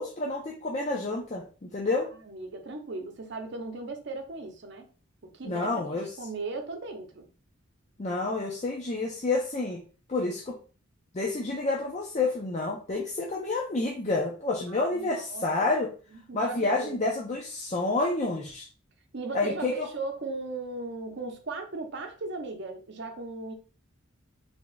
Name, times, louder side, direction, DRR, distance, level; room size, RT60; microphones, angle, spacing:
voice 1, 0.0-2.1 5.4-6.1 8.0-9.8 10.1-10.6 11.1-15.9 16.3-18.7 19.3-19.9, left 3 dB, 35° left, -1 dB, 0.5 m, -29 dB
voice 2, 1.8-4.9 5.2-7.3 14.7-15.5 16.1-17.2 19.1-23.5, right 3 dB, 60° right, 5 dB, 0.7 m, -37 dB
3.4 x 2.3 x 3.9 m, 0.37 s
head